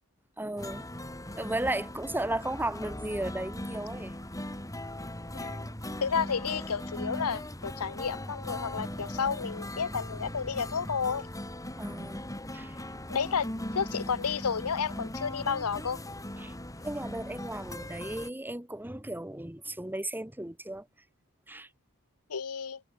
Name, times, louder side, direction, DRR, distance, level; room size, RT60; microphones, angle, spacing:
voice 1, 0.4-0.9 1.4-4.1 11.8-12.2 12.5-13.0 16.4-16.5 16.8-20.9 21.5-21.7, right 1 dB, 10° right, 1.9 m, -35 dB
sound 1, 0.6-18.3, left 1 dB, 15° left, 6.9 m, -39 dB
voice 2, 6.0-11.3 13.1-13.5 13.7-16.0 22.3-22.8, left 6 dB, 80° left, 0.8 m, -31 dB
head